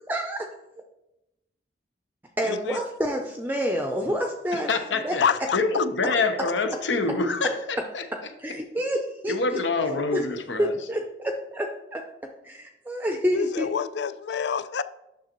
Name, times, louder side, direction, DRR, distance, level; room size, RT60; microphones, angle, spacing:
voice 1, 0.1-0.5 2.4-4.7 5.0-5.2 8.1-9.6 10.1-10.2 10.6-12.1 12.4-13.7, equal, 10° right, 0.5 m, -28 dB
voice 2, 2.5-2.8 5.2-6.2 13.3-14.8, left 7 dB, 70° left, 0.4 m, -27 dB
voice 3, 4.5-5.2 5.5-8.1 9.3-10.8, left 3 dB, 90° left, 0.9 m, -26 dB
9.3 x 6.2 x 3.0 m
head